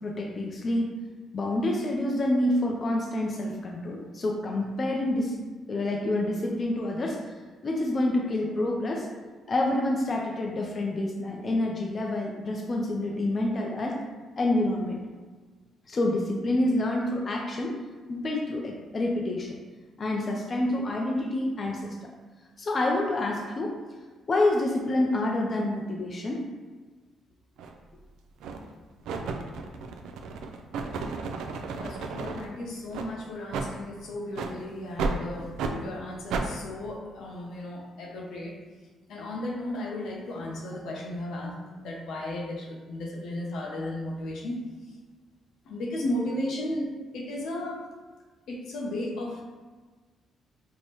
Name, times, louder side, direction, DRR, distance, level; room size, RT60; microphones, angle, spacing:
voice 1, 0.0-0.9 1.3-5.4 5.7-7.2 7.6-9.1 9.5-14.0 14.4-15.0 15.9-17.8 18.1-19.6 20.0-22.1 22.6-23.8 24.3-26.4, left 1 dB, 40° left, 0 dB, 0.4 m, -27 dB
sound 1, 27.6-27.7 28.4-28.7 29.1-32.5 32.9-33.1 33.5-33.7 34.3-34.5 35.0-35.2 35.6-35.8 36.3-36.5, right 4 dB, 85° right, 0.3 m, -32 dB
voice 2, 31.8-38.6 39.1-44.6 45.6-47.9 48.5-49.4, left 1 dB, 80° left, -1 dB, 0.7 m, -34 dB
4.7 x 2.1 x 2.9 m, 1.3 s
cardioid pair, 90°, 0 cm